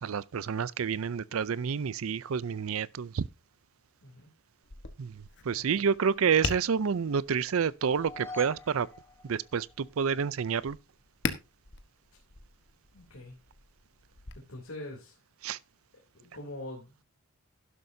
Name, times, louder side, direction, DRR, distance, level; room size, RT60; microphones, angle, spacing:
voice 1, 0.0-3.3 5.0-8.9 9.2-10.8 15.4-15.6, right 6 dB, 70° right, 0.5 m, -29 dB
Tap, 4.6-14.3, left 4 dB, 55° left, 1.2 m, -42 dB
voice 2, 5.5-5.9 12.9-13.3 14.3-15.2 16.1-17.0, left 1 dB, 70° left, 3.0 m, -44 dB
sound 1, 7.8-10.1, left 2 dB, 10° left, 6.0 m, -46 dB
12.0 x 11.0 x 2.7 m
head